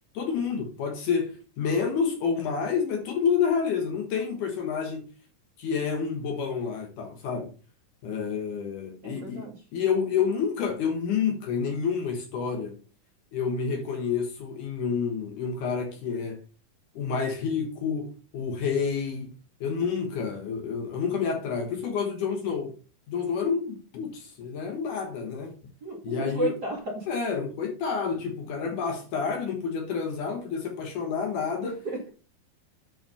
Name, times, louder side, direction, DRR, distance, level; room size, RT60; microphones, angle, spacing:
voice 1, 0.1-5.1 5.6-7.5 8.0-12.7 13.3-16.4 17.0-19.3 19.6-22.7 23.1-25.5 26.0-26.5 27.1-31.8, left 6 dB, 65° left, 2.6 m, -29 dB
voice 2, 9.0-9.5 25.8-27.1 31.6-32.1, right 1 dB, 30° right, 2.6 m, -32 dB
9.1 x 4.8 x 5.4 m
omnidirectional pair, 4.3 m